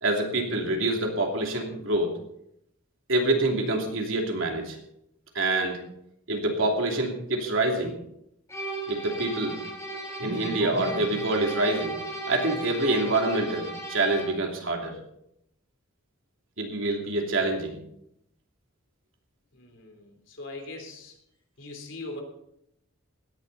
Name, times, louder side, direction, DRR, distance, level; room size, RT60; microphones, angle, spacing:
voice 1, 0.0-2.2 3.1-4.8 5.3-5.8 6.3-7.9 8.9-9.6 10.2-11.9 12.3-15.0 16.6-17.8, right 2 dB, 75° right, 1 dB, 2.9 m, -26 dB
sound 1, 8.5-14.4, right 2 dB, 15° left, 3.6 m, -36 dB
voice 2, 19.5-21.1 21.6-22.2, left 2 dB, 65° left, 3 dB, 3.3 m, -41 dB
17.0 x 11.0 x 4.1 m, 0.77 s
head